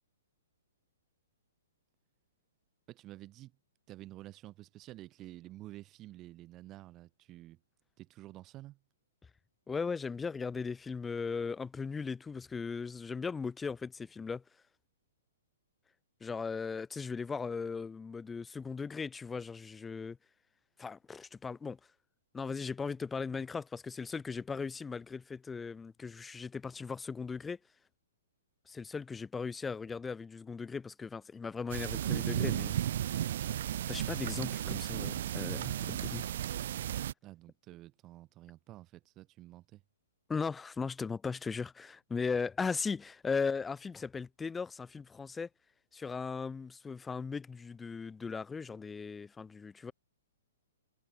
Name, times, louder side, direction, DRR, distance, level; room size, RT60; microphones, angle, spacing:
voice 1, 2.9-3.5 3.9-7.6 8.0-8.8 34.3-34.8 37.2-39.8, right 15 dB, 25° right, 3.7 m, -50 dB
voice 2, 9.7-14.4 16.2-20.2 20.8-21.8 22.3-27.6 28.7-32.8 33.9-36.2 40.3-45.5 45.9-49.9, left 5 dB, 10° left, 0.8 m, -38 dB
sound 1, 31.7-37.1, right 11 dB, 50° right, 1.2 m, -34 dB
figure-of-eight pair, 115°, 0 cm